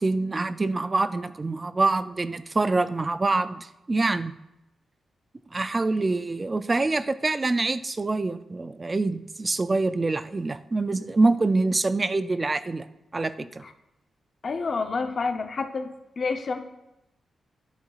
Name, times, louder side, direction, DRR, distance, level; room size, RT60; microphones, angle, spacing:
voice 1, 0.0-4.4 5.5-12.9 13.1-13.6, right 3 dB, 20° right, 12 dB, 0.3 m, -25 dB
voice 2, 14.4-15.9 16.2-16.6, left 4 dB, 35° left, 6 dB, 0.7 m, -28 dB
11.5 x 10.5 x 2.4 m, 0.92 s
wide cardioid pair, 175°, 0 cm